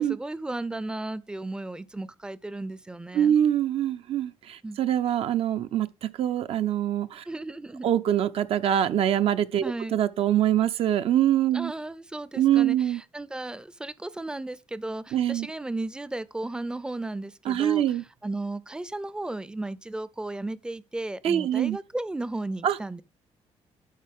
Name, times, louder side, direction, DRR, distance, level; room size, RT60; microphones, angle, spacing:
voice 1, 0.0-3.3 4.6-4.8 7.3-7.9 9.6-10.0 11.5-12.8 13.1-17.8 18.2-23.0, right 2 dB, 5° right, 0.5 m, -34 dB
voice 2, 3.1-7.2 7.8-11.7 12.3-13.0 15.1-15.5 17.4-18.0 21.2-21.8 22.6-22.8, right 10 dB, 60° right, 0.6 m, -24 dB
12.0 x 5.5 x 3.6 m
cardioid pair, 150°, 11 cm